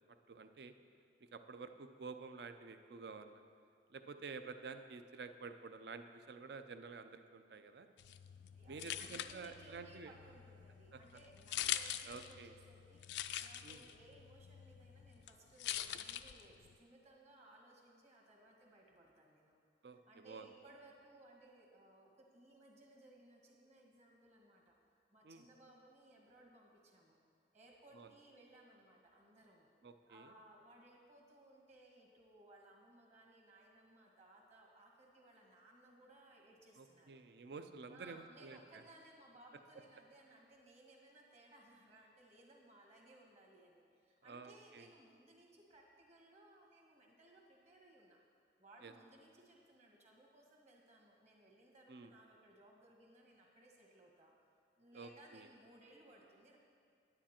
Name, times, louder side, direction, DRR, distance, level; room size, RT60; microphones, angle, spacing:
voice 1, 0.1-0.7 1.3-3.5 3.9-7.9 8.7-10.1 10.9-11.0 12.1-12.5 13.6-13.9 19.8-20.5 25.2-25.4 27.9-28.1 29.8-30.3 36.8-38.6 44.2-44.9 48.8-48.9 51.9-52.1 54.9-55.5, right 4 dB, 65° right, 9 dB, 0.5 m, -50 dB
sound 1, 8.0-16.8, left 11 dB, 75° left, 0.4 m, -45 dB
voice 2, 8.5-19.6 19.9-24.7 25.1-27.2 27.5-29.7 30.1-37.2 37.9-48.2 48.6-54.3 54.8-56.6, right 1 dB, 40° right, -1 dB, 1.7 m, -62 dB
9.9 x 9.8 x 4.4 m, 2.2 s
head